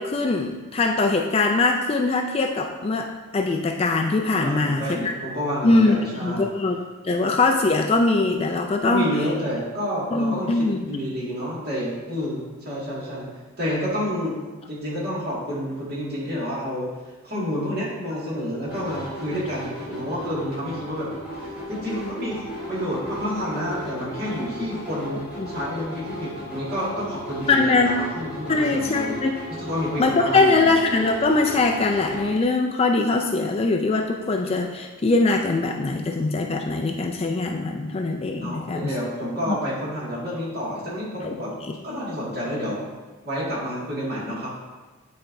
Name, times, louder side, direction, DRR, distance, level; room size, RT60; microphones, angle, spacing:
voice 1, 0.0-5.1 5.6-5.9 6.2-6.8 7.0-9.1 10.1-10.8 25.4-25.5 27.5-28.0 28.5-29.3 30.0-38.9 39.5-39.6 41.2-41.3, left 3 dB, 25° left, 2 dB, 0.3 m, -22 dB
voice 2, 4.4-6.5 8.8-13.3 13.6-14.4 14.7-16.9 17.2-21.1 21.7-29.3 29.6-30.7 38.4-41.5 41.8-42.8 43.2-44.5, equal, 45° right, -6 dB, 2.0 m, -29 dB
sound 1, 18.6-32.4, equal, 5° right, 1.9 m, -36 dB
8.9 x 4.3 x 2.6 m, 1.2 s
head